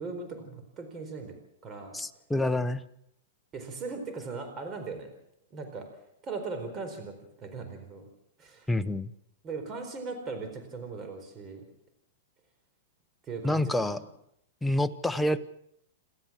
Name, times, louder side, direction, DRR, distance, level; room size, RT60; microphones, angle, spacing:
voice 1, 0.0-1.3 1.6-2.0 3.5-5.1 5.5-5.9 6.2-8.1 8.4-8.7 9.4-11.6 13.2-14.0, right 4 dB, 25° right, 6 dB, 4.4 m, -39 dB
voice 2, 1.9-2.8 8.7-9.1 13.4-14.0 14.6-15.4, left 1 dB, 5° left, 9 dB, 0.9 m, -27 dB
28.5 x 13.0 x 7.5 m, 0.77 s
supercardioid pair, 150°, 0 cm